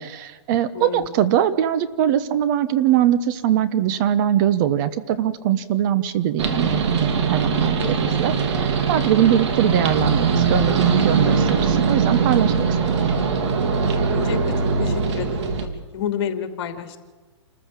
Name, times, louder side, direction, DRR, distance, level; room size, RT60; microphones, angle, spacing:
voice 1, 0.0-12.9, right 11 dB, 40° right, 13 dB, 1.3 m, -21 dB
voice 2, 0.7-1.1 7.8-8.0 14.1-14.5 14.8-17.0, left 8 dB, 55° left, 6 dB, 2.9 m, -30 dB
sound 1, 6.4-15.7, right 5 dB, 65° right, 3.5 m, -21 dB
28.5 x 14.0 x 7.6 m, 1.3 s
hypercardioid pair, 145°, 16 cm